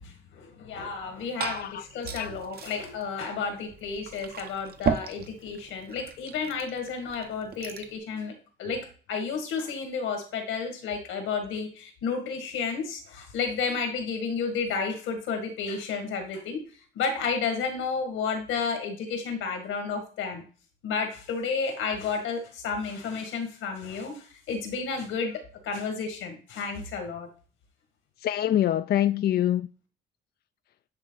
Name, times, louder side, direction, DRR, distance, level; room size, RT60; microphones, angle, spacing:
voice 1, 0.0-8.3 8.6-16.6 17.0-20.4 20.8-27.3, left 5 dB, 85° left, 2.0 m, -32 dB
Glass / Fill (with liquid), 0.9-8.0, right 6 dB, 50° right, 1.0 m, -36 dB
voice 2, 1.5-1.8 2.1-2.3 28.2-29.7, left 12 dB, 55° left, 0.4 m, -25 dB
9.7 x 3.4 x 4.0 m
cardioid pair, 90°, 20 cm